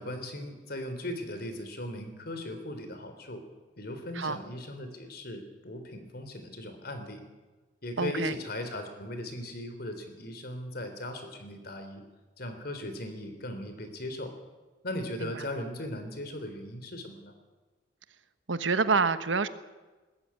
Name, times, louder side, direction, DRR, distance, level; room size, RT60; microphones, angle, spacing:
voice 1, 0.0-3.4 3.8-7.2 7.8-12.0 12.4-14.3 14.8-17.3, left 1 dB, 55° left, 7 dB, 3.6 m, -38 dB
voice 2, 8.0-8.4 15.2-15.4 18.5-19.5, right 4 dB, 85° right, 12 dB, 1.2 m, -27 dB
20.5 x 14.0 x 9.9 m, 1.2 s
head